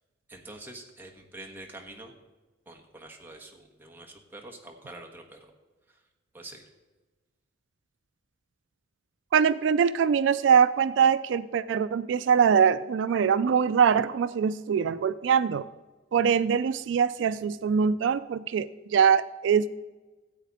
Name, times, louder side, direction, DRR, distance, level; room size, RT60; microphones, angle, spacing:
voice 1, 0.3-2.1 2.7-5.5 5.9-6.0 6.3-6.6, right 2 dB, 10° right, 0 dB, 1.4 m, -46 dB
voice 2, 9.3-15.7 16.1-19.7, right 7 dB, 75° right, 15 dB, 0.3 m, -23 dB
15.0 x 8.1 x 4.1 m, 1.2 s
head